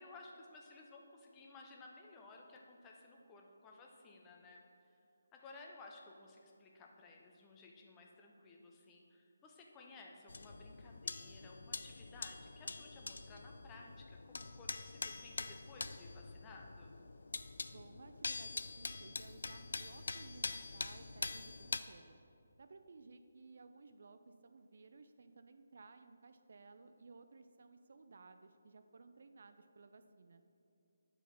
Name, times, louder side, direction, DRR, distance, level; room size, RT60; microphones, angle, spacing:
voice 1, 0.0-4.6 5.3-17.0, left 3 dB, 15° left, 0 dB, 0.8 m, -57 dB
sound 1, 10.3-21.8, left 3 dB, 65° left, 0.3 m, -45 dB
voice 2, 17.7-22.2 22.6-30.4, right 4 dB, 55° right, 9 dB, 0.4 m, -58 dB
9.0 x 4.5 x 5.1 m, 2.6 s
figure-of-eight pair, 150°, 0 cm